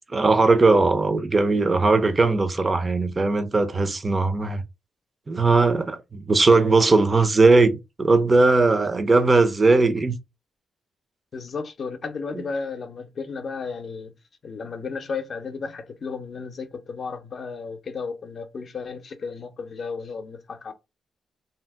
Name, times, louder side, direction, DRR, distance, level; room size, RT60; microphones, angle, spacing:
voice 1, 0.1-4.6 5.3-10.2 12.4-12.5, right 3 dB, 30° right, 0.5 m, -19 dB
voice 2, 11.3-14.1 14.4-20.7, left 5 dB, 55° left, 0.5 m, -33 dB
2.7 x 2.0 x 3.3 m
cardioid pair, 75°, 0 cm